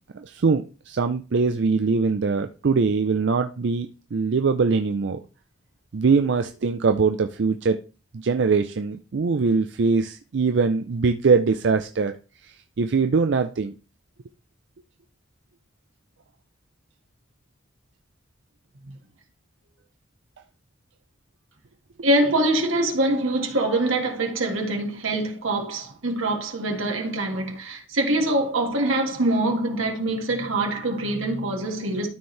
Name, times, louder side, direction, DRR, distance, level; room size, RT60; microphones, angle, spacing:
voice 1, 0.1-5.2 5.9-7.8 8.1-12.1 12.4-13.7, right 4 dB, 60° right, 0.4 m, -22 dB
voice 2, 22.0-32.1, right 1 dB, 90° right, 1.8 m, -24 dB
12.5 x 4.4 x 3.3 m
head